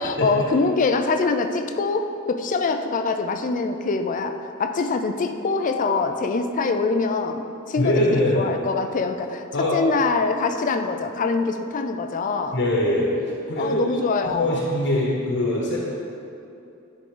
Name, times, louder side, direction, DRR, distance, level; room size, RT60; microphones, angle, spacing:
voice 1, 0.0-12.6 13.6-14.6, left 4 dB, 35° left, 7 dB, 0.4 m, -24 dB
voice 2, 7.8-8.4 9.5-9.8 12.5-13.1 13.5-14.0 14.2-15.8, left 1 dB, 55° left, -4 dB, 1.1 m, -22 dB
10.5 x 3.8 x 3.8 m, 2.7 s
head